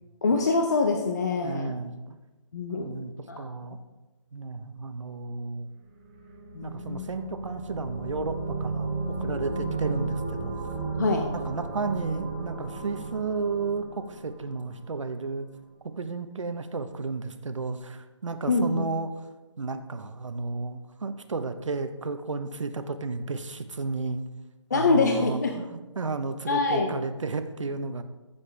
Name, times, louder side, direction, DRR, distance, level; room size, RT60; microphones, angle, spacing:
voice 1, 0.2-1.7 2.5-2.9 3.3-3.4 6.5-7.1 11.0-11.3 18.5-18.9 24.7-25.6 26.5-26.9, left 3 dB, 35° left, 4 dB, 0.7 m, -25 dB
voice 2, 1.4-2.2 2.7-3.8 4.3-5.7 6.6-10.6 11.1-11.2 11.4-15.5 16.0-19.1 19.6-24.2 24.7-28.0, right 4 dB, 70° right, 9 dB, 1.0 m, -33 dB
sound 1, 6.0-14.9, right 3 dB, 15° right, 0.7 m, -34 dB
14.0 x 7.1 x 3.4 m, 1.1 s
hypercardioid pair, 170°, 16 cm